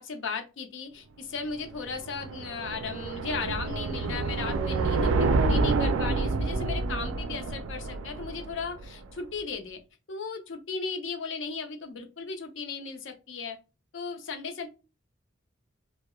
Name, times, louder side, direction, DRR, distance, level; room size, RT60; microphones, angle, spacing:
voice 1, 0.0-9.8 10.1-13.6 13.9-14.7, left 4 dB, 65° left, 5 dB, 0.5 m, -36 dB
sound 1, 1.5-8.9, right 3 dB, 85° right, 0.3 m, -28 dB
2.9 x 2.0 x 2.2 m, 0.30 s
head